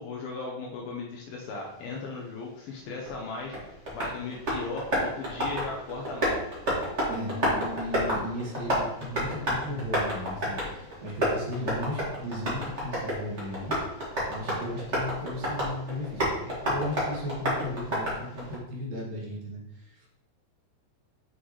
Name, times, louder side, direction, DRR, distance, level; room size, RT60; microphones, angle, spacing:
voice 1, 0.0-6.4, left 3 dB, 75° left, -1 dB, 2.2 m, -37 dB
Tap, 3.0-18.5, equal, 40° right, 1.0 m, -31 dB
voice 2, 7.1-20.1, left 1 dB, 60° right, -3 dB, 2.7 m, -36 dB
sound 1, 7.1-10.8, left 1 dB, 85° right, 3.6 m, -43 dB
7.7 x 6.3 x 3.2 m, 0.86 s
omnidirectional pair, 5.4 m